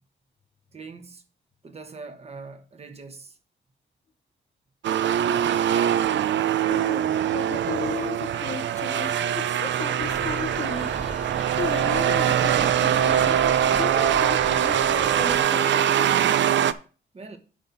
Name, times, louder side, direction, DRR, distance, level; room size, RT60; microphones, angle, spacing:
voice 1, 0.7-1.2 1.6-3.4 5.9-6.0 17.1-17.4, right 4 dB, 35° right, 1.2 m, -42 dB
sound 1, 4.8-16.7, right 10 dB, 90° right, 0.5 m, -23 dB
voice 2, 6.7-16.2, left 5 dB, 40° left, 0.7 m, -35 dB
sound 2, 10.0-15.4, equal, 5° right, 1.6 m, -39 dB
10.5 x 5.8 x 4.0 m
wide cardioid pair, 160°, 19 cm